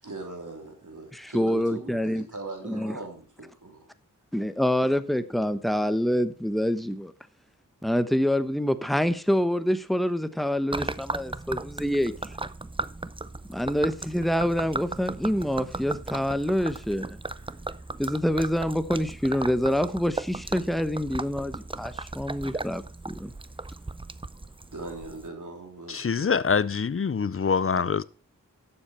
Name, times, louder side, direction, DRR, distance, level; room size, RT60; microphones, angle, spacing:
voice 1, 0.0-3.9 17.4-17.8 22.1-22.2 24.7-26.4, right 3 dB, 70° right, 3.4 m, -41 dB
voice 2, 1.1-2.2 2.6-3.0 4.3-7.1 7.8-12.1 13.5-17.2 18.0-23.3, equal, ahead, 0.9 m, -26 dB
Gurgling / Liquid, 10.7-25.3, right 2 dB, 15° right, 0.5 m, -36 dB
voice 3, 25.9-28.0, left 6 dB, 45° left, 0.5 m, -25 dB
11.5 x 7.5 x 4.4 m
wide cardioid pair, 45°, 32 cm